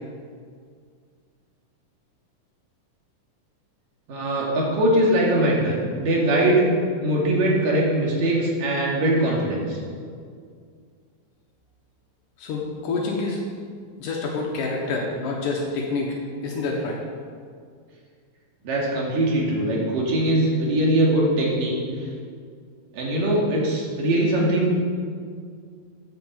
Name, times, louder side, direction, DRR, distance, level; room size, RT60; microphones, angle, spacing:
voice 1, 4.1-6.6 7.0-9.8 18.6-22.0 22.9-24.7, right 1 dB, 90° right, -3 dB, 4.1 m, -21 dB
voice 2, 12.4-13.4 14.0-16.2 16.4-17.0, left 3 dB, 80° left, -2 dB, 2.8 m, -27 dB
10.0 x 8.5 x 7.4 m, 2.1 s
omnidirectional pair, 3.7 m